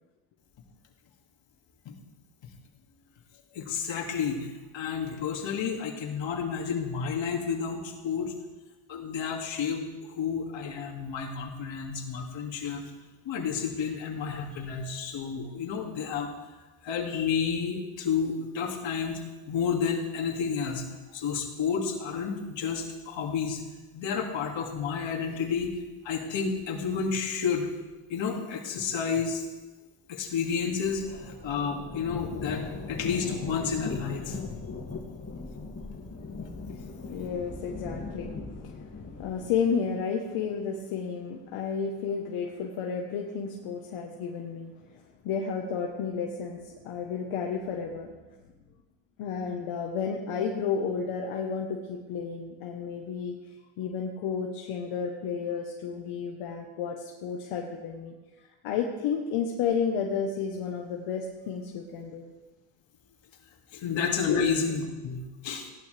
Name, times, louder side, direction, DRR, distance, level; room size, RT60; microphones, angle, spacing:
voice 1, 3.5-4.5 4.7-8.3 8.9-9.9 10.2-12.8 13.2-16.3 16.8-19.2 19.5-20.8 21.1-23.6 23.9-25.8 26.0-27.7 28.1-29.4 30.1-34.4 63.7-65.2 65.4-65.7, left 6 dB, 60° left, 0 dB, 2.6 m, -30 dB
sound 1, 30.5-39.5, left 4 dB, 30° left, 2.4 m, -39 dB
voice 2, 36.7-48.1 49.2-53.4 53.8-58.1 58.4-62.3 63.8-63.9 64.2-64.5, left 6 dB, 80° left, 0 dB, 1.4 m, -32 dB
17.0 x 12.0 x 3.5 m, 1.2 s
cardioid pair, 105°, 49 cm